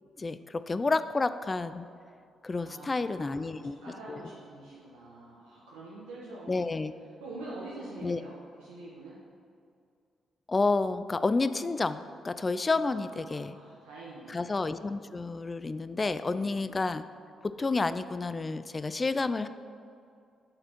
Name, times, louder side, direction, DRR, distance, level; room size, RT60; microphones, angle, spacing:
voice 1, 0.2-1.9 2.4-3.8 4.1-4.3 6.5-6.9 8.0-8.2 10.5-13.6 14.3-17.0 17.4-19.5, left 3 dB, 30° left, 13 dB, 0.3 m, -30 dB
voice 2, 2.5-6.7 7.2-9.2 12.8-14.4 16.3-16.6, right 2 dB, 80° right, -7 dB, 0.8 m, -46 dB
7.7 x 4.2 x 4.4 m, 2.4 s
hypercardioid pair, 40°, 0 cm